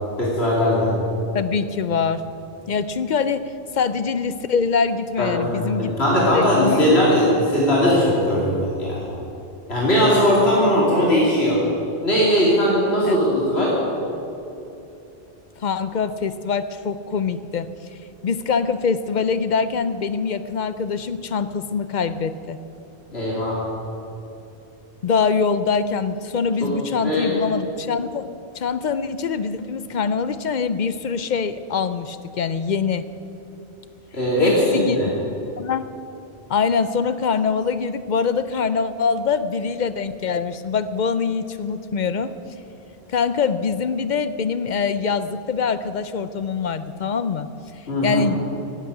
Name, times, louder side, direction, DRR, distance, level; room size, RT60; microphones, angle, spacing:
voice 1, 0.2-0.9 5.2-9.1 9.7-11.6 12.0-13.7 23.1-23.6 26.6-26.7 27.0-27.4 34.1-34.7 34.9-35.1 47.9-48.2, equal, 80° left, -6 dB, 3.0 m, -19 dB
voice 2, 1.3-2.2 2.7-6.8 13.0-13.2 15.6-17.7 18.2-22.6 25.0-33.1 34.4-35.2 35.6-35.9 36.5-42.4 43.1-47.5 48.0-48.4, left 5 dB, 55° left, 13 dB, 0.6 m, -24 dB
12.0 x 8.6 x 9.8 m, 2.8 s
omnidirectional pair, 1.1 m